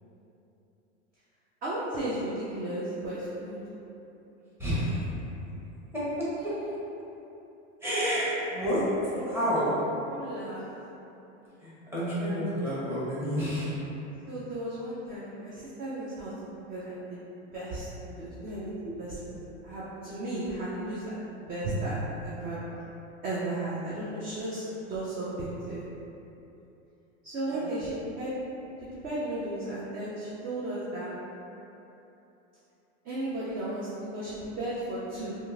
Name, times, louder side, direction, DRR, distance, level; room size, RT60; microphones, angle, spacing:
voice 1, 1.6-3.6 9.1-9.3 10.1-10.6 14.3-16.3 16.7-17.2 17.5-19.4 19.6-22.6 23.2-24.6 24.9-25.8 27.2-28.3 28.9-31.1 33.0-35.4, right 1 dB, 25° right, -8 dB, 0.4 m, -34 dB
voice 2, 4.6-5.0 5.9-6.3 7.8-8.8 9.2-9.8 11.6-13.7 27.5-27.6, equal, 5° right, -11 dB, 0.9 m, -29 dB
2.8 x 2.5 x 2.4 m, 2.9 s
hypercardioid pair, 115°, 37 cm